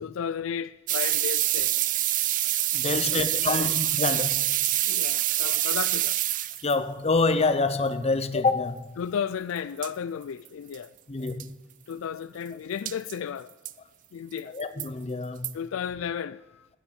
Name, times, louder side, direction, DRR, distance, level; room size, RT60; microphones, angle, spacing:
voice 1, 0.0-1.8 2.9-3.8 4.9-6.2 9.0-10.9 11.9-13.5 14.1-14.6 15.5-16.7, left 7 dB, 70° left, 0.4 m, -34 dB
sound 1, 0.9-6.8 9.6-9.7 9.8-9.9 10.5-10.6 10.7-10.8 11.3-11.4 12.9-13.1 13.7-13.8 14.4-14.9 15.4-15.5, right 14 dB, 40° right, 0.4 m, -26 dB
voice 2, 2.7-4.4 6.6-8.9 11.1-11.5 14.5-15.6, left 3 dB, 30° left, 0.7 m, -26 dB
9.8 x 8.8 x 9.0 m
head